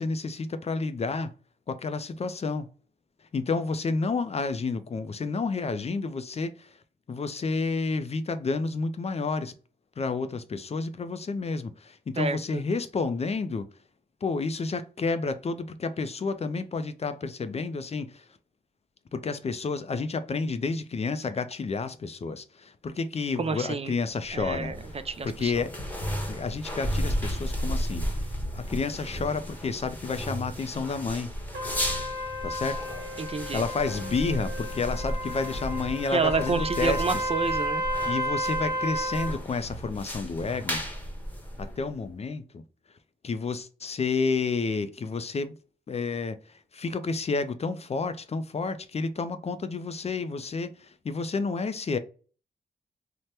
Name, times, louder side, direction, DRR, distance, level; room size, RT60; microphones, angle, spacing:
voice 1, 0.0-1.3 1.7-2.7 3.2-6.8 7.1-9.5 10.0-13.7 14.2-18.3 19.1-24.7 25.2-25.8 26.3-31.3 32.4-32.8 33.5-37.3 38.0-40.8 41.6-42.6 43.2-45.5 45.9-52.0, left 4 dB, 35° left, 0.4 m, -30 dB
voice 2, 12.2-12.6 23.4-23.9 24.3-24.8 25.1-25.6 33.2-33.6 36.1-37.8, right 4 dB, 35° right, 0.4 m, -29 dB
sound 1, 24.2-42.1, equal, 10° left, 0.9 m, -34 dB
Trumpet, 31.5-39.4, equal, 75° right, 0.8 m, -32 dB
2.8 x 2.1 x 3.2 m
cardioid pair, 70°, 17 cm